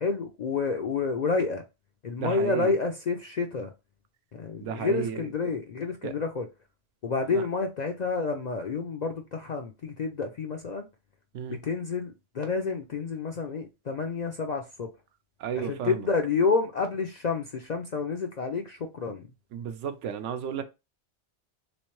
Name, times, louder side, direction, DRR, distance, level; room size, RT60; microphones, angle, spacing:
voice 1, 0.0-1.6 2.0-3.7 4.3-6.5 7.0-10.9 11.5-14.9 15.6-19.3, left 4 dB, 60° left, 0.4 m, -29 dB
voice 2, 2.2-2.7 4.6-5.3 6.0-6.1 7.3-7.4 11.3-11.6 15.4-16.1 19.5-20.6, right 8 dB, 85° right, 1.0 m, -33 dB
3.5 x 3.1 x 3.0 m
omnidirectional pair, 1.2 m